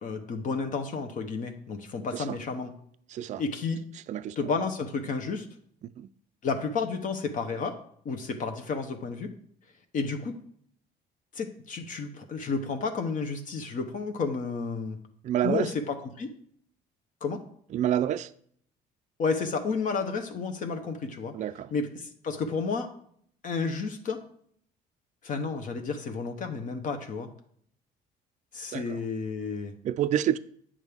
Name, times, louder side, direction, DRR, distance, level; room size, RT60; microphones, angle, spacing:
voice 1, 0.0-2.7 3.4-3.8 4.4-5.5 6.4-7.8 8.0-9.3 9.9-10.4 11.3-15.0 15.4-16.3 17.2-17.4 19.2-21.3 21.7-22.9 23.4-24.2 25.2-27.3 28.5-29.7, left 4 dB, 50° left, 6 dB, 0.9 m, -31 dB
voice 2, 3.1-3.4 4.1-4.4 5.8-6.1 15.2-15.7 17.7-18.3 21.3-21.7 28.7-29.0 29.8-30.4, right 11 dB, 45° right, 12 dB, 0.4 m, -28 dB
8.7 x 6.3 x 3.5 m, 0.63 s
cardioid pair, 110°, 17 cm